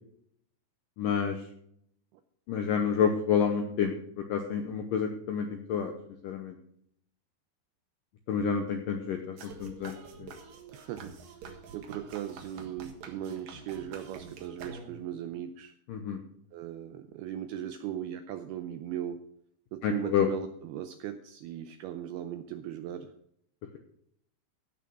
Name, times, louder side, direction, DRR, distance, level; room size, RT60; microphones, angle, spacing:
voice 1, 1.0-1.4 2.5-5.9 6.2-6.6 8.3-10.3 15.9-16.2 19.8-20.3, left 7 dB, 80° left, 5 dB, 1.9 m, -29 dB
sound 1, 9.4-15.2, right 5 dB, 60° right, 2.8 m, -47 dB
voice 2, 10.7-15.7 16.5-19.2 19.7-23.1, right 11 dB, 85° right, 9 dB, 2.3 m, -38 dB
16.0 x 5.8 x 6.2 m, 0.70 s
omnidirectional pair, 5.2 m